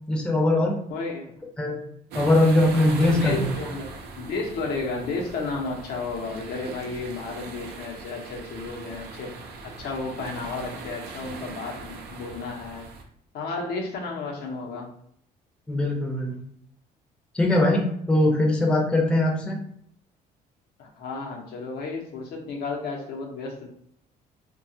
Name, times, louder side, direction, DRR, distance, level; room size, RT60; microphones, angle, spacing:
voice 1, 0.1-0.8 1.6-1.9 2.1-3.4 15.7-16.4 17.3-19.6, left 1 dB, 5° left, -1 dB, 0.6 m, -21 dB
voice 2, 0.9-1.3 3.0-12.9 13.3-14.9 20.8-23.7, left 3 dB, 70° left, 0 dB, 0.7 m, -33 dB
sound 1, 2.1-13.0, right 3 dB, 75° right, 0.6 m, -39 dB
2.8 x 2.3 x 2.7 m, 0.68 s
cardioid pair, 110°, 17 cm